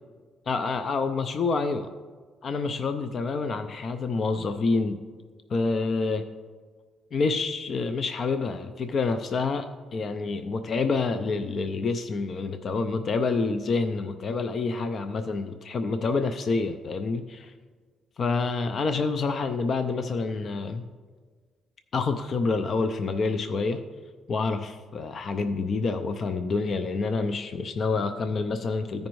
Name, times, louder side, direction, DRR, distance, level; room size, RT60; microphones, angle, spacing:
voice 1, 0.5-1.9 2.4-5.0 5.5-6.2 7.1-17.5 18.2-20.8 21.9-23.8 24.3-29.1, left 4 dB, 50° left, 9 dB, 0.4 m, -27 dB
14.0 x 5.2 x 3.1 m, 1.5 s
cardioid pair, 90°, 0 cm